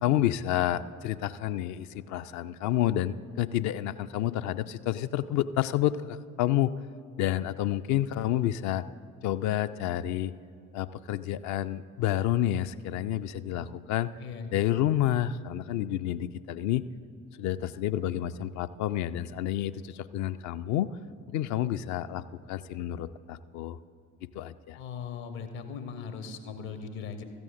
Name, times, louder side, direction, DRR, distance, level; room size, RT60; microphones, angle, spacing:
voice 1, 0.0-6.7 7.2-8.8 9.2-10.3 10.7-14.1 14.5-16.8 17.4-20.9 21.3-23.8 24.3-24.8, left 12 dB, 45° left, 14 dB, 0.4 m, -29 dB
voice 2, 13.5-13.8 14.2-14.5 24.8-27.2, left 6 dB, 60° left, 7 dB, 1.2 m, -39 dB
16.5 x 14.0 x 2.6 m, 2.5 s
figure-of-eight pair, 50°, 41 cm